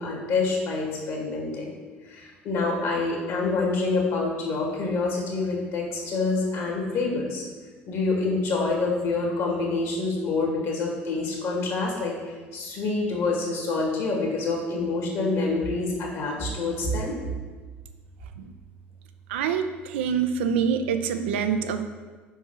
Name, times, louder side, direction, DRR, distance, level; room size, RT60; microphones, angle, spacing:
voice 1, 0.0-1.8 2.1-7.4 7.9-12.1 12.5-17.2, left 3 dB, 50° left, -1 dB, 1.9 m, -27 dB
voice 2, 19.3-21.9, right 7 dB, 65° right, 8 dB, 0.4 m, -26 dB
5.3 x 4.7 x 5.7 m, 1.4 s
figure-of-eight pair, 60°, 7 cm